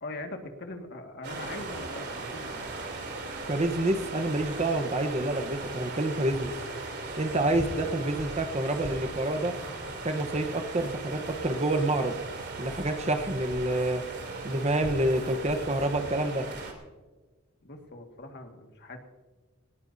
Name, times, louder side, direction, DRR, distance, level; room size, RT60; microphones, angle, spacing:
voice 1, 0.0-2.7 17.6-19.0, left 2 dB, 50° left, 4 dB, 1.9 m, -41 dB
sound 1, 1.2-16.7, right 2 dB, 55° right, 3.2 m, -38 dB
voice 2, 3.5-6.5 7.2-9.5 10.0-12.2 12.6-14.0 14.4-16.4, right 1 dB, 30° right, 6 dB, 1.1 m, -28 dB
20.0 x 19.5 x 2.8 m, 1.3 s
head